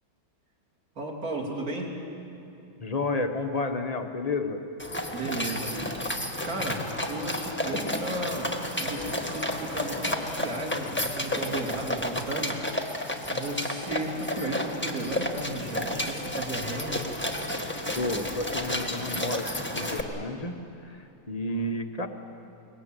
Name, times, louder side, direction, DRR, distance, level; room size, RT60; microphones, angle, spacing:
voice 1, 1.0-2.0 5.1-6.0 6.4-8.5 8.8-12.6 13.3-17.1, right 2 dB, 45° right, 0 dB, 3.6 m, -34 dB
voice 2, 2.8-4.6 17.9-22.1, left 2 dB, 25° left, 6 dB, 1.0 m, -31 dB
sound 1, 4.8-20.0, left 1 dB, 5° left, 1.4 m, -31 dB
22.5 x 21.0 x 9.0 m, 2.9 s
omnidirectional pair, 2.2 m